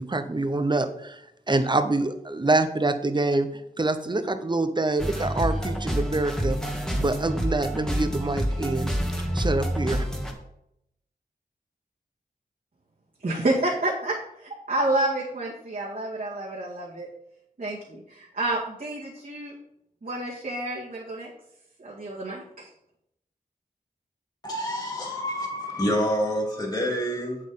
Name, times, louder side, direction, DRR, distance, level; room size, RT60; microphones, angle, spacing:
voice 1, 0.0-6.6 6.9-8.9 9.3-10.1, right 2 dB, 30° right, 10 dB, 0.8 m, -26 dB
sound 1, 5.0-10.3, equal, 5° left, 1.6 m, -28 dB
voice 2, 13.2-17.1 17.6-19.5 20.0-21.3 21.8-22.7, right 2 dB, 60° right, -6 dB, 2.0 m, -29 dB
voice 3, 24.4-27.4, equal, 25° left, 0 dB, 3.0 m, -27 dB
8.1 x 7.6 x 3.8 m, 0.79 s
wide cardioid pair, 60°, 16 cm